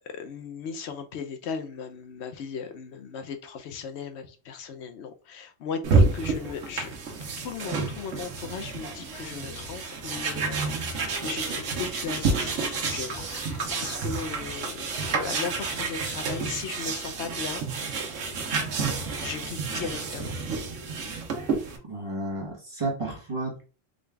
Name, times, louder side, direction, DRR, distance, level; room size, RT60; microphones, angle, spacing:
voice 1, 0.0-6.9 7.4-17.6 19.2-20.4, left 6 dB, 65° left, 0.8 m, -37 dB
sound 1, 5.8-21.8, right 4 dB, 75° right, 1.1 m, -29 dB
voice 2, 21.8-23.6, right 2 dB, 30° right, 0.9 m, -32 dB
3.8 x 2.3 x 3.3 m
omnidirectional pair, 1.3 m